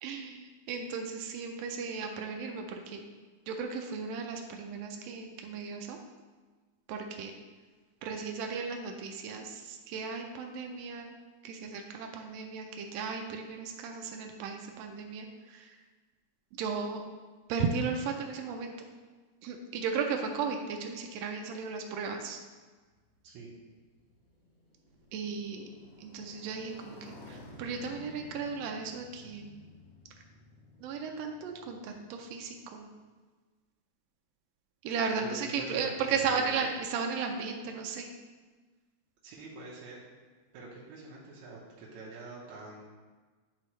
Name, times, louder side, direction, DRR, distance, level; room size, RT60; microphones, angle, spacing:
voice 1, 0.0-3.0 3.5-6.0 6.9-7.3 8.0-11.1 11.4-15.8 16.6-17.0 17.5-18.9 19.4-22.4 25.1-25.7 26.0-29.5 30.8-32.9 34.8-38.1, right 5 dB, 90° right, 3 dB, 1.4 m, -35 dB
Motorcycle, 22.9-32.9, left 2 dB, 70° left, 2.4 m, -53 dB
voice 2, 35.2-36.6 39.2-40.0 40.5-42.8, right 2 dB, 75° right, -5 dB, 2.3 m, -45 dB
9.9 x 3.7 x 3.2 m, 1.4 s
omnidirectional pair, 3.5 m